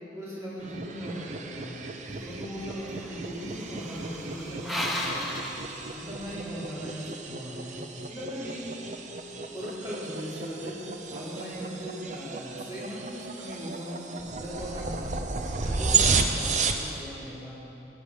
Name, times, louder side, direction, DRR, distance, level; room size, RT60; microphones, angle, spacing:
voice 1, 0.1-1.9 2.2-5.2 5.9-7.7 8.1-8.6 9.5-10.8 11.1-14.0 14.4-17.6, equal, 15° right, -9 dB, 3.7 m, -38 dB
sound 1, 0.6-16.9, right 4 dB, 40° right, 0.7 m, -33 dB
sound 2, 2.1-6.4, left 1 dB, ahead, 1.1 m, -36 dB
15.5 x 10.5 x 5.1 m, 2.8 s
head